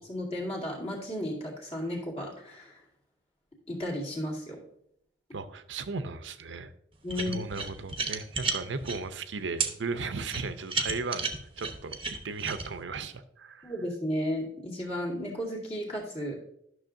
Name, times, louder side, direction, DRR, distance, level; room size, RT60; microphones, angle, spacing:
voice 1, 0.0-2.8 3.7-4.6 7.0-7.4 13.6-16.4, equal, 35° left, -2 dB, 2.2 m, -34 dB
voice 2, 5.3-6.7 7.2-11.2 11.6-12.0 12.2-13.7, right 4 dB, 85° right, 11 dB, 0.6 m, -36 dB
sound 1, 7.1-9.0 9.6-9.7 10.3-12.7, right 4 dB, 30° right, 0.8 m, -32 dB
12.0 x 6.1 x 2.6 m, 0.73 s
head